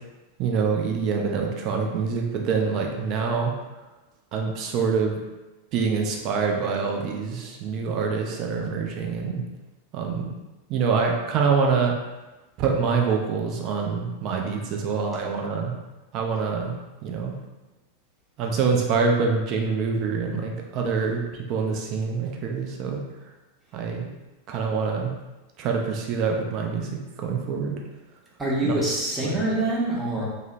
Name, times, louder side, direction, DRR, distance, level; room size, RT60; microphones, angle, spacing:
voice 1, 0.4-3.5 4.3-5.2 5.7-9.4 9.9-10.3 10.7-11.9 12.6-15.7 16.1-16.8 17.0-17.3 18.4-23.0 23.7-24.1 24.5-25.2 25.6-27.8 28.6-28.7 29.2-29.4, right 5 dB, 40° right, 1 dB, 0.4 m, -25 dB
voice 2, 28.4-30.3, right 1 dB, 10° right, -6 dB, 0.8 m, -25 dB
2.8 x 2.0 x 2.5 m, 1.1 s
figure-of-eight pair, 90°, 0 cm